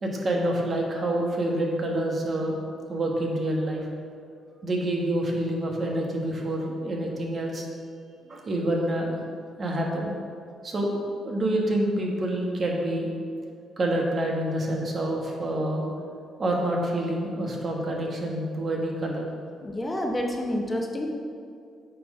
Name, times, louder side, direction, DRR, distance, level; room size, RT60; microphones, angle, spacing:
voice 1, 0.0-2.6 2.9-3.9 4.6-7.7 8.3-9.2 9.6-10.1 10.6-10.9 11.2-13.1 13.8-15.9 16.4-19.2, right 1 dB, 40° right, -1 dB, 1.4 m, -27 dB
voice 2, 19.6-21.1, left 1 dB, 20° left, 2 dB, 0.7 m, -28 dB
8.4 x 3.8 x 5.4 m, 2.3 s
cardioid pair, 90°, 0 cm